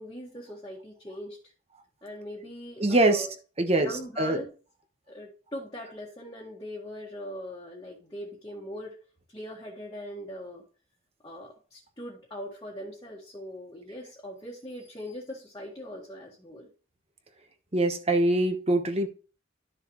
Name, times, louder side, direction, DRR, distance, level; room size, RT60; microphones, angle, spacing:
voice 1, 0.0-1.4 2.0-3.3 3.7-4.5 5.1-9.0 9.3-10.6 11.2-16.7, equal, 20° left, -4 dB, 1.7 m, -41 dB
voice 2, 2.8-3.3 3.6-4.4 17.7-19.1, right 2 dB, 30° right, 6 dB, 1.2 m, -24 dB
12.0 x 6.7 x 3.2 m, 0.37 s
head